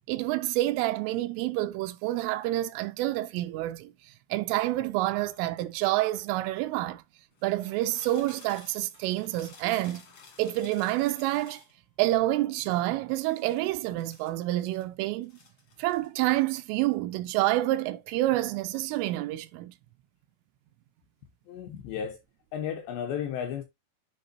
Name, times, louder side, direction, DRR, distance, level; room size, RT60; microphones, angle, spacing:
voice 1, 0.1-7.0 7.4-10.0 10.4-11.6 12.0-15.3 15.8-19.7, right 16 dB, 85° right, 3.0 m, -28 dB
sound 1, 4.6-6.5 7.3-11.8 13.2-14.8 15.2-16.3 16.6-16.9, left 5 dB, 65° left, 1.4 m, -55 dB
voice 2, 21.5-22.2 22.5-23.6, left 8 dB, 85° left, 2.5 m, -33 dB
10.5 x 5.1 x 2.6 m
omnidirectional pair, 5.9 m